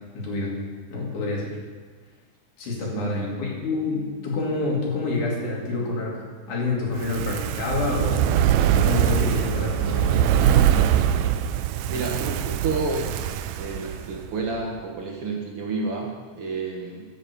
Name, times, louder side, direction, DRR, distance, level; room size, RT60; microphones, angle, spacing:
voice 1, 0.1-0.6 0.9-1.6 2.6-8.4 8.7-11.0, left 2 dB, 80° left, -3 dB, 4.1 m, -28 dB
voice 2, 2.9-3.4 11.9-13.3 13.6-17.0, right 3 dB, 55° right, 0 dB, 2.0 m, -30 dB
Fire, 6.9-14.3 14.6-14.7, right 10 dB, 80° right, 1.7 m, -22 dB
13.0 x 6.6 x 6.9 m, 1.4 s
omnidirectional pair, 3.4 m